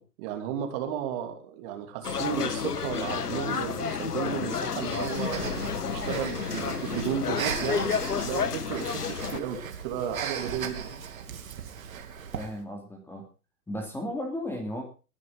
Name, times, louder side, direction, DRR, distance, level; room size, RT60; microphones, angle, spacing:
voice 1, 0.0-5.5 5.8-7.9 8.2-11.0, right 8 dB, 35° right, 5 dB, 3.1 m, -34 dB
sound 1, 2.0-9.4, left 6 dB, 80° left, 1.5 m, -31 dB
Breathing, 4.9-12.6, right 7 dB, 60° right, 2.7 m, -37 dB
voice 2, 12.3-13.3 13.7-14.8, left 1 dB, 5° left, 3 dB, 2.8 m, -35 dB
20.5 x 10.5 x 3.8 m, 0.34 s
figure-of-eight pair, 125°, 46 cm